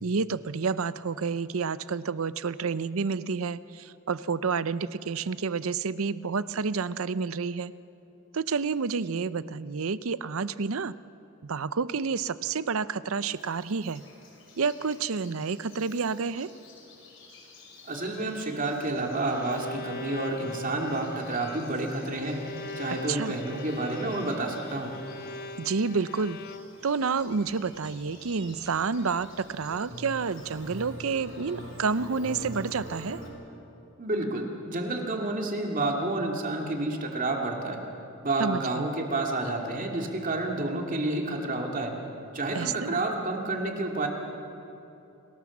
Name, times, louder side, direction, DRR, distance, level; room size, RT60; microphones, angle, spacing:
voice 1, 0.0-7.7 8.3-10.9 11.4-14.0 14.6-16.5 23.1-23.3 25.6-26.4 26.8-33.2 38.4-38.9 42.5-43.0, right 5 dB, 85° right, 15 dB, 0.6 m, -29 dB
Bird vocalization bird call bird song, 13.3-33.3, left 3 dB, 70° left, 5.2 m, -54 dB
voice 2, 17.8-22.4 22.8-24.9 34.0-37.8 38.2-41.9 42.3-44.1, right 2 dB, 40° right, 1 dB, 2.6 m, -30 dB
Bowed string instrument, 19.2-27.0, left 3 dB, 45° left, 0.8 m, -41 dB
sound 1, 27.1-33.3, right 1 dB, 65° right, 6.4 m, -44 dB
28.5 x 18.5 x 7.3 m, 2.9 s
head